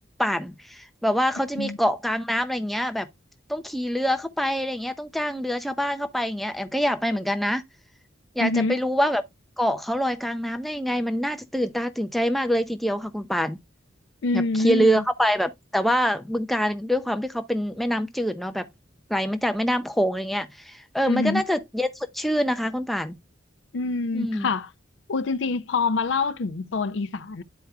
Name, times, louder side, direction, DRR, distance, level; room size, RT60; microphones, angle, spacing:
voice 1, 0.2-3.1 3.5-7.6 8.4-9.2 9.6-13.6 14.3-18.7 19.1-23.1 24.1-24.5, equal, ahead, 0.4 m, -25 dB
voice 2, 8.4-8.7 14.2-15.0 21.1-21.4 23.7-24.7 25.1-27.4, left 3 dB, 65° left, 0.5 m, -25 dB
11.5 x 4.6 x 2.3 m
head